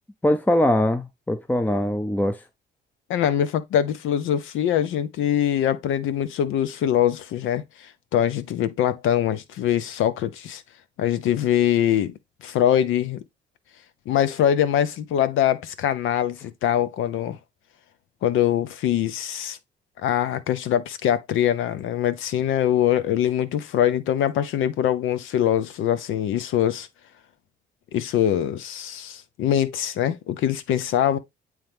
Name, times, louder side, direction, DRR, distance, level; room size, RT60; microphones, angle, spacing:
voice 1, 0.2-2.4, left 1 dB, 10° left, 0.5 m, -22 dB
voice 2, 3.1-7.6 8.1-10.6 11.0-12.1 12.4-13.2 14.1-17.4 18.2-19.6 20.0-26.9 27.9-31.2, left 10 dB, 85° left, 0.8 m, -23 dB
8.9 x 3.2 x 3.5 m
cardioid pair, 90°, 20 cm